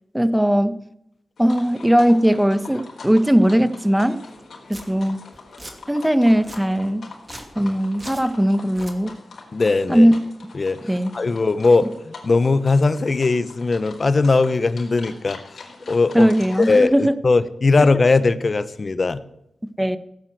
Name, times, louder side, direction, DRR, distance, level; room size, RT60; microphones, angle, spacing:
voice 1, 0.1-0.7 1.4-4.2 4.7-5.3 5.9-7.1 7.6-9.2 9.9-10.1 10.9-11.1 16.1-17.1 17.8-17.9 19.8-20.0, equal, 5° right, 13 dB, 1.2 m, -18 dB
sound 1, 1.4-16.8, left 4 dB, 75° left, 4.4 m, -43 dB
Domestic sounds home sounds, 4.3-4.4 4.7-4.8 5.3-5.7 6.2-6.6 7.2-7.5 8.0-8.2 8.6-8.9, right 1 dB, 25° right, 2.8 m, -39 dB
voice 2, 9.5-10.1 10.5-15.4 15.9-16.3 16.6-19.2, left 3 dB, 50° left, 13 dB, 1.0 m, -19 dB
16.0 x 9.2 x 7.9 m, 0.80 s
cardioid pair, 60°, 0 cm